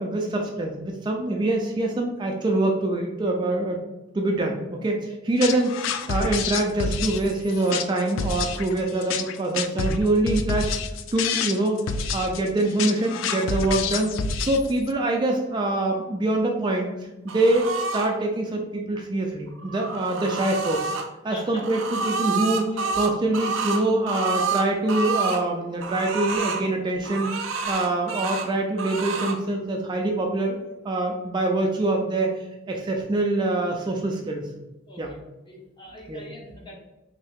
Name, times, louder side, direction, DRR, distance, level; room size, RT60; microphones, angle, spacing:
voice 1, 0.0-3.8 4.1-10.7 11.1-16.9 17.2-20.9 21.2-27.3 27.7-30.6 30.8-32.3 32.7-34.5 35.0-35.1 36.1-36.2, right 2 dB, 25° right, 1 dB, 0.3 m, -25 dB
sound 1, 5.4-14.9, left 5 dB, 85° left, 0.3 m, -28 dB
sound 2, 17.3-18.1 19.5-21.1 21.6-25.4 25.8-26.6 27.0-28.5 28.8-29.4, right 4 dB, 80° right, 0.5 m, -29 dB
voice 2, 21.3-21.7 22.2-22.5 22.7-22.9 34.9-35.2 35.4-36.8, left 1 dB, 25° left, -2 dB, 0.8 m, -43 dB
3.2 x 2.7 x 3.4 m, 1.0 s
head